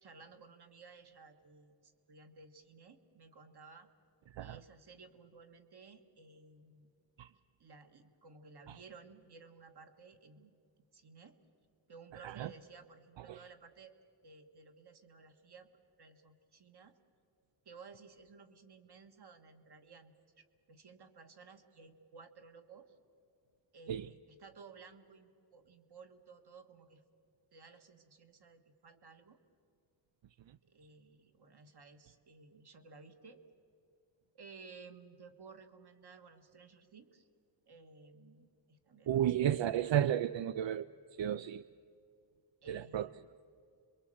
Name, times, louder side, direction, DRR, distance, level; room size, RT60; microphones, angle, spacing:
voice 1, 0.0-3.9 4.4-6.9 7.3-10.5 10.9-11.4 11.9-13.9 14.2-15.7 16.0-17.0 17.6-23.0 23.7-27.0 27.5-29.4 30.6-33.4 34.3-37.3 37.7-40.0 42.6-43.2, right 4 dB, 60° right, 6 dB, 1.7 m, -56 dB
voice 2, 39.1-40.9 41.2-41.6 42.7-43.1, right 10 dB, 85° right, 14 dB, 0.5 m, -32 dB
27.0 x 23.0 x 7.8 m, 2.5 s
wide cardioid pair, 175°, 43 cm